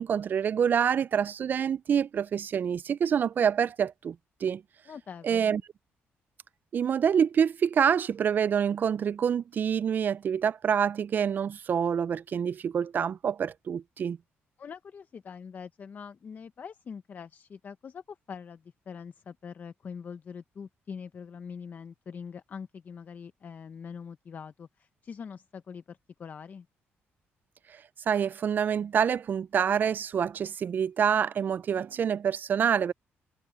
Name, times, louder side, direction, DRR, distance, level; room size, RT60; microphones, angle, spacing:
voice 1, 0.0-4.2 4.4-4.6 5.2-5.6 6.7-14.2 28.1-32.9, right 7 dB, 45° right, 0.3 m, -26 dB
voice 2, 4.9-5.6 14.6-26.7, left 6 dB, 40° left, 0.6 m, -43 dB
cardioid pair, 120°, 4 cm